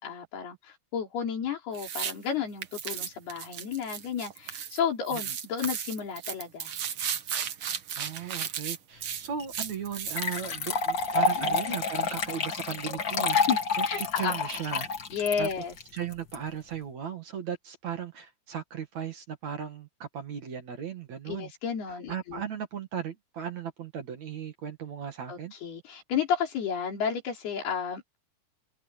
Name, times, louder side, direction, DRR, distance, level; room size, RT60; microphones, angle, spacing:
voice 1, 0.0-6.7 11.3-11.8 13.3-13.6 13.8-14.4 15.1-15.7 21.3-22.4 25.3-28.2, left 7 dB, 80° left, 5.9 m, -32 dB
sound 1, 1.7-2.1 2.6-4.8 5.1-10.5, right 8 dB, 75° right, 1.1 m, -35 dB
voice 2, 8.0-13.4 13.8-14.9 15.4-15.5 15.9-21.5 21.9-25.5, right 8 dB, 50° right, 3.0 m, -37 dB
sound 2, 9.4-9.5 10.0-16.3, left 4 dB, 40° left, 1.9 m, -29 dB
open air
omnidirectional pair, 4.5 m